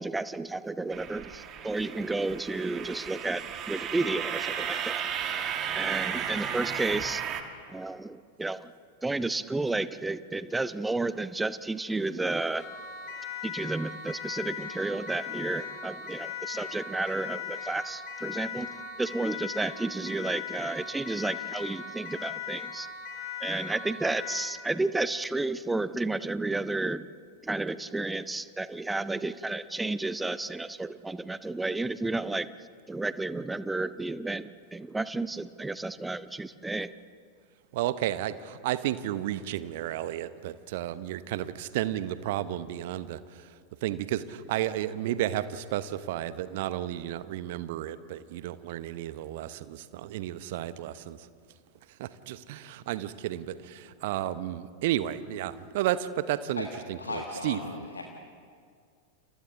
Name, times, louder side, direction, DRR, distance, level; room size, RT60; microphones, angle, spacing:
voice 1, 0.0-5.1 5.7-7.2 7.7-8.7 9.0-12.7 13.4-22.9 23.4-27.1 27.4-32.5 32.9-36.9, right 2 dB, 10° right, 15 dB, 0.7 m, -32 dB
sound 1, 0.9-7.4, right 8 dB, 30° right, 1.7 m, -34 dB
Siren, 12.6-24.6, left 7 dB, 40° left, 7.3 m, -39 dB
voice 2, 37.7-51.3 51.9-57.6, right 13 dB, 50° right, 14 dB, 0.9 m, -32 dB
voice 3, 57.0-58.0, left 3 dB, 75° left, 2 dB, 1.6 m, -36 dB
29.5 x 28.0 x 3.8 m, 2.1 s
figure-of-eight pair, 90°, 0 cm